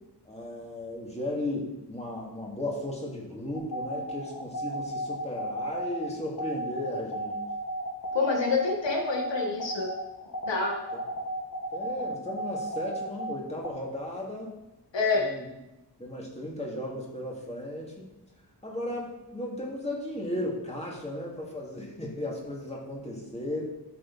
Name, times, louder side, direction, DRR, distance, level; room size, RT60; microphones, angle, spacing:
voice 1, 0.2-7.4 10.9-11.0 11.7-14.5 15.1-15.5 16.0-18.1 18.6-23.6, left 1 dB, 15° left, -2 dB, 2.4 m, -35 dB
sound 1, 3.5-13.7, right 1 dB, 55° left, 2.0 m, -34 dB
voice 2, 8.1-9.9 10.5-10.8 14.9-15.3, left 4 dB, 85° left, 1 dB, 1.7 m, -27 dB
13.5 x 6.7 x 4.1 m, 0.95 s
wide cardioid pair, 155°, 43 cm